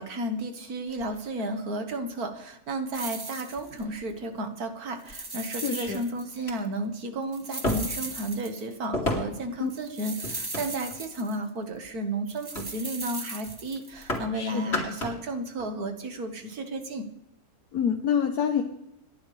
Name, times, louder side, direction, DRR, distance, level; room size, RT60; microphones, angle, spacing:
voice 1, 0.0-17.1, right 1 dB, 75° right, 6 dB, 2.1 m, -33 dB
sound 1, 0.9-1.9 2.8-2.9 3.5-4.1 5.0-5.2 5.8-5.9 6.3-6.5 7.6-8.1 8.9-9.5 10.2-11.1 11.6-11.9 12.5-12.7 13.0-13.2 13.4-14.3 14.6-15.2 15.6-15.7, left 1 dB, 45° left, 3.2 m, -33 dB
sound 2, 2.9-4.0 5.0-6.4 6.6-6.7 7.3-8.8 9.7-11.5 12.3-14.2, right 2 dB, 20° right, 0.9 m, -38 dB
voice 2, 5.6-6.0 9.6-9.7 14.3-14.7 17.7-18.6, left 8 dB, 75° left, 3 dB, 1.6 m, -27 dB
29.5 x 11.0 x 3.4 m, 0.86 s
omnidirectional pair, 1.6 m